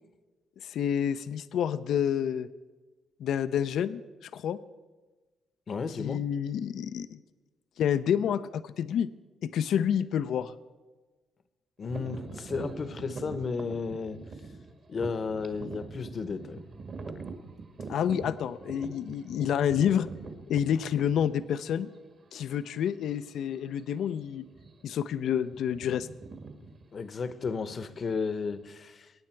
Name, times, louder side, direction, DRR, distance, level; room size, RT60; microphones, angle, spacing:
voice 1, 0.6-2.5 3.2-4.0 4.3-4.6 6.0-7.2 7.8-9.1 9.4-10.5 17.9-20.1 20.5-21.9 22.3-24.5 24.8-26.1, left 9 dB, 70° left, 13 dB, 0.5 m, -28 dB
voice 2, 5.7-6.2 11.8-14.2 14.9-16.6 18.2-18.4 26.9-29.1, left 5 dB, 45° left, 13 dB, 0.9 m, -33 dB
sound 1, 11.9-21.7 22.3-22.4 23.1-23.3 23.6-23.8 24.5-25.0 25.3-28.7, right 4 dB, 50° right, 1.8 m, -43 dB
22.0 x 9.4 x 4.5 m, 1.3 s
cardioid pair, 90°, 0 cm